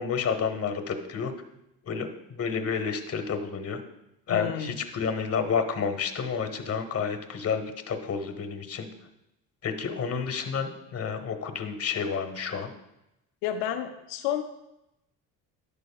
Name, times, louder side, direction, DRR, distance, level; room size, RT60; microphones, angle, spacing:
voice 1, 0.0-1.3 1.8-3.8 4.3-8.9 9.6-12.7, left 6 dB, 35° left, 8 dB, 1.0 m, -30 dB
voice 2, 4.3-4.7 13.4-14.4, left 10 dB, 85° left, 6 dB, 0.5 m, -30 dB
11.0 x 5.1 x 2.3 m, 0.88 s
supercardioid pair, 70°, 41 cm